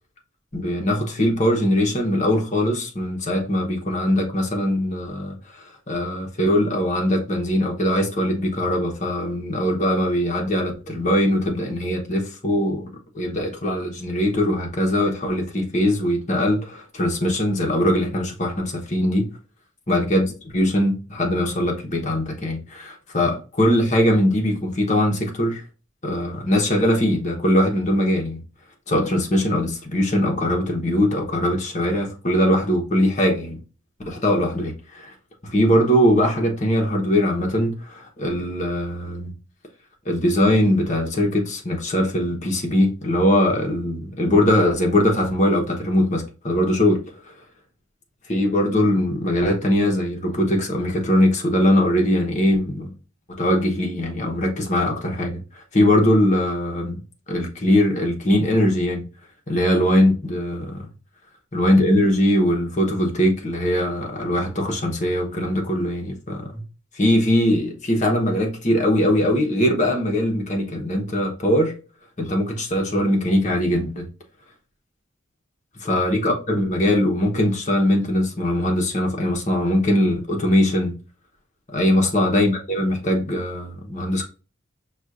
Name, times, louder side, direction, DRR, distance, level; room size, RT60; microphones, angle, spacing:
voice 1, 0.5-5.4 5.9-12.9 13.1-19.3 19.9-20.2 20.5-25.6 26.0-28.4 28.9-33.6 34.1-35.1 35.4-39.3 40.0-47.0 48.3-52.9 53.4-57.0 57.3-59.0 59.5-60.9 61.5-66.6 66.9-71.7 72.2-74.1 75.8-81.0 81.7-84.2, left 1 dB, 35° left, 1.0 m, -21 dB
6.1 x 2.4 x 2.5 m
head